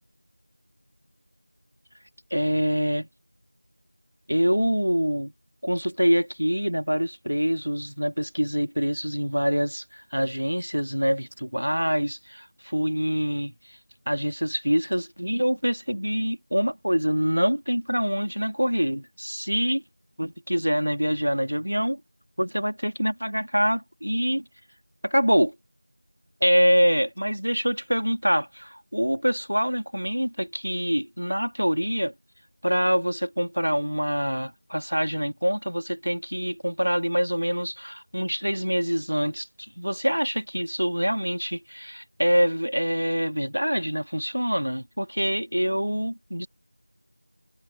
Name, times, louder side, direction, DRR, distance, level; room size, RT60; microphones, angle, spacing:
voice 1, 2.3-3.1 4.3-5.3 5.6-13.5 14.1-19.8 20.2-22.0 22.4-24.4 25.0-25.6 26.4-32.1 32.6-46.5, equal, 80° right, 2.2 m, -25 dB
figure-of-eight pair, 175°, 0 cm